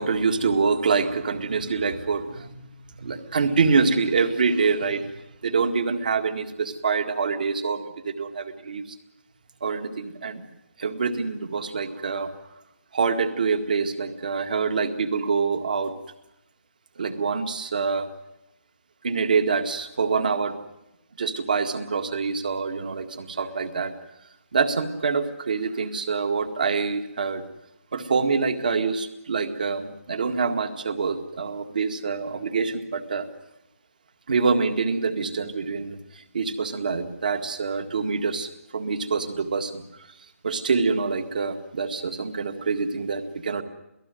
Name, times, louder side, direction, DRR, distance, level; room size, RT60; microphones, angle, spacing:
voice 1, 0.0-2.6 3.0-5.1 5.4-8.8 9.6-10.4 10.8-12.3 12.9-15.9 17.0-18.1 19.0-20.6 21.2-23.9 24.5-27.4 27.9-33.3 34.3-40.1 40.4-43.6, right 5 dB, 35° right, 9 dB, 2.0 m, -25 dB
28.5 x 18.5 x 7.7 m, 0.90 s
hypercardioid pair, 175°, 7 cm